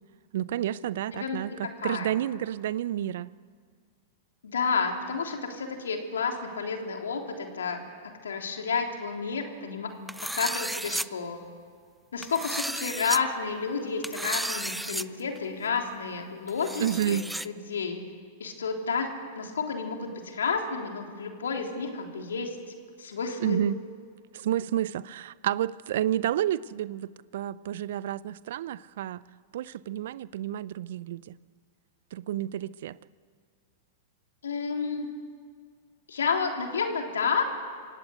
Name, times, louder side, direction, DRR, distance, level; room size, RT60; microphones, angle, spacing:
voice 1, 0.3-3.3 16.8-17.2 23.4-23.8 24.3-29.2 29.5-31.4 32.1-33.0, right 11 dB, 65° right, 20 dB, 0.5 m, -30 dB
voice 2, 1.1-2.1 4.4-9.9 10.3-11.4 12.1-18.0 18.4-22.6 23.0-23.6 34.4-35.1 36.1-37.4, left 5 dB, 80° left, 3 dB, 3.3 m, -31 dB
sound 1, 10.1-11.1 12.2-13.2 14.0-15.0 15.3-15.4 16.5-17.5, right 1 dB, 5° right, 0.6 m, -33 dB
26.5 x 17.0 x 8.4 m, 2.1 s
hypercardioid pair, 105°, 0 cm